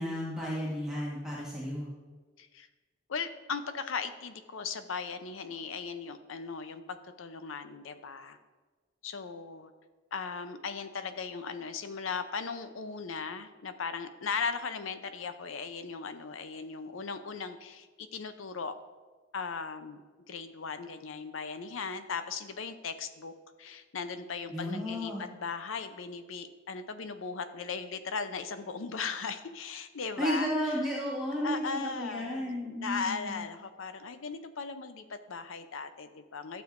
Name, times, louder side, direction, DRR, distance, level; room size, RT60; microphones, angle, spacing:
voice 1, 0.0-1.9 24.5-25.3 30.2-33.4, equal, 5° right, -7 dB, 1.4 m, -33 dB
voice 2, 3.1-6.8 7.2-8.4 9.0-9.7 10.1-18.7 19.3-20.0 20.3-23.3 23.6-30.7 31.4-36.6, left 5 dB, 85° left, 10 dB, 0.6 m, -38 dB
12.0 x 7.0 x 2.6 m, 1.4 s
head